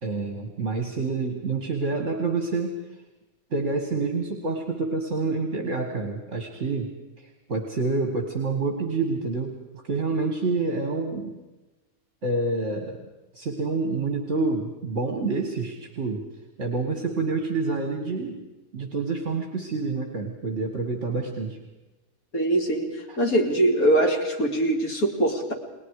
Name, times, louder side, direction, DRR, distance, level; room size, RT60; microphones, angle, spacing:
voice 1, 0.0-2.8 3.5-6.9 7.5-9.5 9.8-11.4 12.2-13.0 13.3-16.2 16.6-18.4 18.7-21.6 23.1-23.2, right 3 dB, 55° right, 4 dB, 2.2 m, -27 dB
voice 2, 22.3-25.5, right 1 dB, 85° left, 2 dB, 3.5 m, -22 dB
30.0 x 21.0 x 4.9 m, 1.1 s
omnidirectional pair, 1.5 m